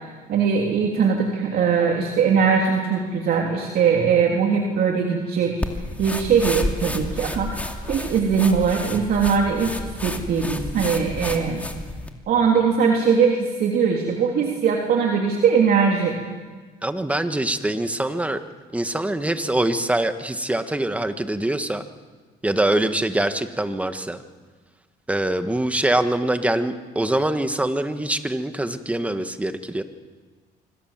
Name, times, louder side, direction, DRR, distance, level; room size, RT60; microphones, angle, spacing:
voice 1, 0.3-5.5 6.0-7.5 7.9-11.7 12.3-16.2, right 6 dB, 65° right, 0 dB, 3.4 m, -20 dB
sound 1, 5.6-12.1, left 1 dB, 10° left, 2.5 m, -31 dB
voice 2, 16.8-18.4 18.7-21.8 22.4-24.2 25.1-29.8, right 1 dB, 10° right, 8 dB, 1.6 m, -24 dB
27.0 x 25.0 x 7.5 m, 1.4 s
cardioid pair, 110°, 17 cm